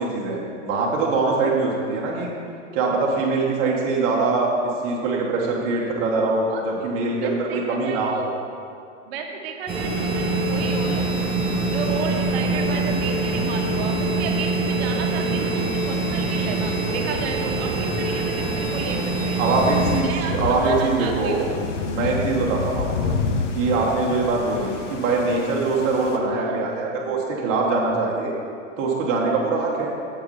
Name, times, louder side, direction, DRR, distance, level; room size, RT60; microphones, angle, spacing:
voice 1, 0.0-2.3 2.7-4.5 4.8-8.3 12.6-12.9 15.3-15.6 19.4-21.5 21.9-23.1 23.5-28.3 28.8-29.9, right 3 dB, 35° right, -3 dB, 1.3 m, -23 dB
voice 2, 7.2-8.2 9.0-11.0 11.7-13.9 14.2-19.4 20.0-21.5, right 5 dB, 55° right, 2 dB, 1.2 m, -33 dB
sound 1, 9.7-20.0, right 2 dB, 15° right, 0.8 m, -24 dB
Thunder / Rain, 19.5-26.2, left 4 dB, 70° left, 0.9 m, -29 dB
7.5 x 4.7 x 5.5 m, 2.4 s
hypercardioid pair, 135°, 38 cm